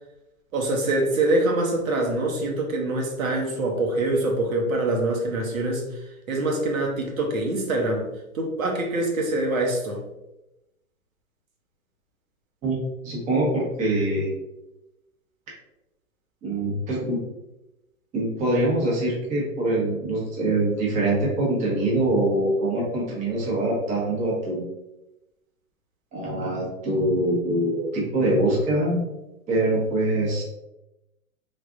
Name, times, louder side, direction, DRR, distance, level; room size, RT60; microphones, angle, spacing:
voice 1, 0.5-5.8 6.3-8.1 8.3-10.0, right 2 dB, 70° right, 0 dB, 1.0 m, -24 dB
voice 2, 13.0-14.3 16.4-17.2 18.1-24.6 26.1-29.0 29.5-30.4, right 1 dB, 15° right, -4 dB, 0.8 m, -24 dB
3.5 x 2.5 x 2.4 m, 0.94 s
hypercardioid pair, 130°, 43 cm